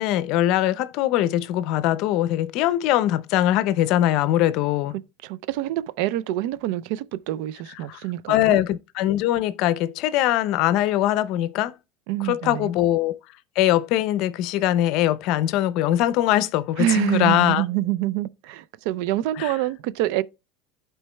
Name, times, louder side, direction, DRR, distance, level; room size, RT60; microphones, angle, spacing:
voice 1, 0.0-4.9 7.9-8.0 8.3-11.7 12.2-13.2 13.6-17.6 19.4-19.5, left 13 dB, 60° left, 0.5 m, -22 dB
voice 2, 5.2-8.6 12.1-12.7 16.8-20.2, right 14 dB, 70° right, 0.4 m, -26 dB
11.5 x 4.5 x 2.2 m
supercardioid pair, 120°, 0 cm